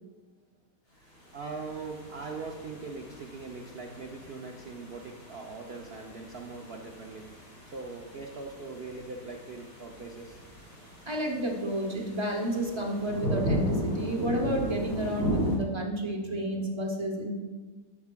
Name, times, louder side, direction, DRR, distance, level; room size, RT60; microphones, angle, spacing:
sound 1, 1.2-15.6, equal, 90° left, 3.2 m, -37 dB
voice 1, 1.3-7.2 7.7-10.4, right 4 dB, 80° right, 1 dB, 0.5 m, -41 dB
voice 2, 11.1-17.3, right 1 dB, 30° right, 0 dB, 0.5 m, -31 dB
10.5 x 6.9 x 2.2 m, 1.3 s
omnidirectional pair, 1.8 m